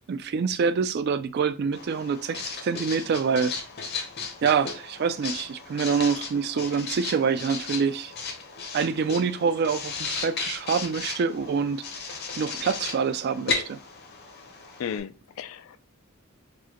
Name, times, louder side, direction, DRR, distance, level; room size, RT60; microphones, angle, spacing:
voice 1, 0.1-3.6 4.4-8.1 8.7-11.8 12.3-13.8, right 5 dB, 50° right, 0.3 m, -26 dB
Writing, 1.7-15.0, left 4 dB, 50° left, 0.7 m, -35 dB
voice 2, 14.8-15.8, left 7 dB, 65° left, 0.3 m, -34 dB
4.8 x 2.1 x 2.9 m
head